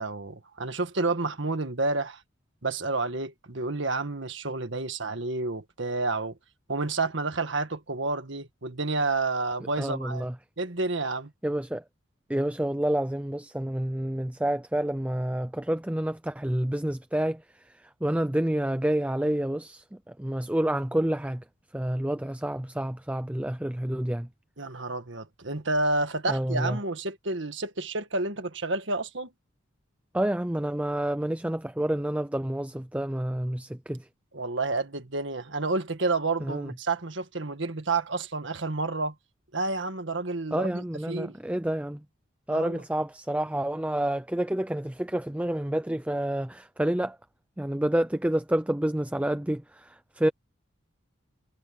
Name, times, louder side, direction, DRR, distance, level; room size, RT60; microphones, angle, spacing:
voice 1, 0.0-2.2 2.6-6.4 6.7-10.3 10.6-11.3 24.6-29.3 34.3-39.1 39.5-41.4 42.5-42.8, right 3 dB, 65° right, 1.8 m, -30 dB
voice 2, 9.8-10.3 11.4-11.8 12.3-17.4 18.0-19.8 20.2-21.4 21.7-24.3 26.3-26.8 30.1-34.1 36.4-36.7 40.5-42.0 42.5-47.2 47.6-50.3, right 1 dB, 5° right, 0.5 m, -28 dB
head